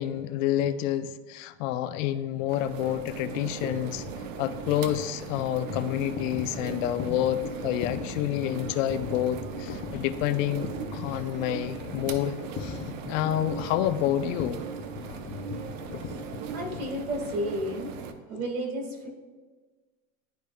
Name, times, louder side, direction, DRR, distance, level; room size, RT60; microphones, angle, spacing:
voice 1, 0.0-4.1 4.4-12.8 13.1-14.6, left 12 dB, 65° left, 12 dB, 0.6 m, -28 dB
sound 1, 2.5-18.1, right 6 dB, 60° right, 0.8 m, -39 dB
sound 2, 3.6-17.7, left 6 dB, 35° left, 0.8 m, -39 dB
voice 2, 16.5-17.9 18.3-19.1, equal, 80° right, 2 dB, 1.8 m, -32 dB
11.5 x 4.6 x 2.2 m, 1.4 s
hypercardioid pair, 105°, 42 cm